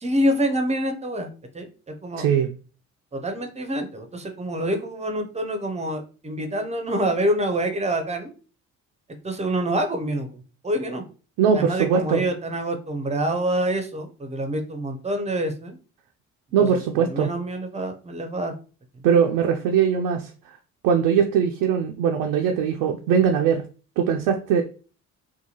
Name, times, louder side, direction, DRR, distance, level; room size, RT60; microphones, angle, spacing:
voice 1, 0.0-2.2 3.1-8.3 9.2-11.0 11.5-15.8 16.6-18.5 18.9-19.0, right 1 dB, 15° right, 5 dB, 0.6 m, -26 dB
voice 2, 2.2-2.5 11.4-12.2 16.5-17.3 19.0-20.3 20.8-23.6 24.0-24.6, right 7 dB, 60° right, 3 dB, 0.5 m, -21 dB
2.7 x 2.2 x 2.8 m, 0.36 s
hypercardioid pair, 50°, 40 cm